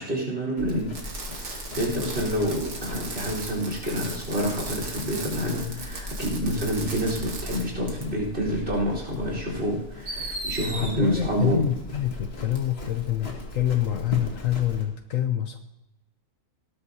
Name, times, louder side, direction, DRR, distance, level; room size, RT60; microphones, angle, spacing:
voice 1, 0.0-11.7, equal, 40° right, -2 dB, 4.4 m, -28 dB
Livestock farm animals working animals, 0.6-14.9, left 1 dB, 40° left, 1.9 m, -39 dB
Fireworks, 0.9-7.6 7.9-8.0 9.1-9.2 10.1-10.9 12.6-12.7, right 3 dB, 85° right, 2.5 m, -37 dB
voice 2, 10.7-15.6, left 11 dB, 65° left, 8 dB, 1.1 m, -26 dB
18.5 x 13.0 x 2.8 m, 0.94 s
omnidirectional pair, 1.6 m